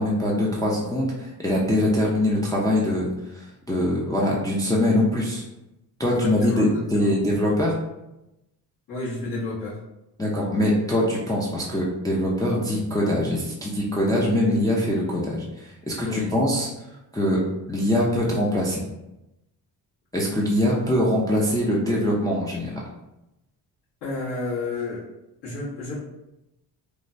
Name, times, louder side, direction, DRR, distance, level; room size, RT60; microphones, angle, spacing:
voice 1, 0.0-5.4 6.0-7.8 10.2-16.7 17.1-17.4 17.7-18.8 20.1-22.8, left 1 dB, 10° left, -4 dB, 0.3 m, -23 dB
voice 2, 6.0-7.1 8.9-9.8 16.0-16.3 24.0-25.0 25.4-25.9, left 2 dB, 75° left, -13 dB, 1.4 m, -30 dB
3.1 x 2.2 x 2.5 m, 0.93 s
cardioid pair, 120°, 40 cm